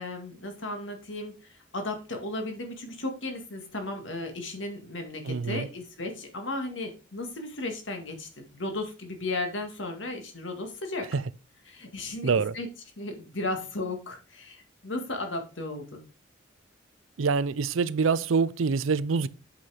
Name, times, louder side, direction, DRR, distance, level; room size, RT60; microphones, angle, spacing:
voice 1, 0.0-11.1 11.7-12.7 13.0-16.0, left 2 dB, 70° left, 2.0 m, -35 dB
voice 2, 5.3-5.7 11.1-11.2 12.2-12.5 17.2-19.3, right 5 dB, 85° right, 0.5 m, -25 dB
8.0 x 5.7 x 4.8 m
head